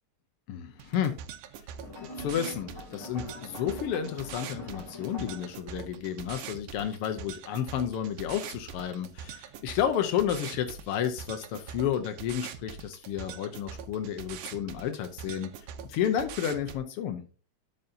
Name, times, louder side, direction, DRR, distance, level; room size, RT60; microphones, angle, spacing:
voice 1, 0.5-1.1 2.0-15.5 15.9-17.2, left 9 dB, 85° left, 7 dB, 1.2 m, -31 dB
sound 1, 0.8-16.8, right 7 dB, 90° right, 2.2 m, -43 dB
sound 2, 1.8-5.4, equal, 10° left, 1.8 m, -44 dB
12.5 x 5.5 x 2.7 m, 0.36 s
omnidirectional pair, 3.4 m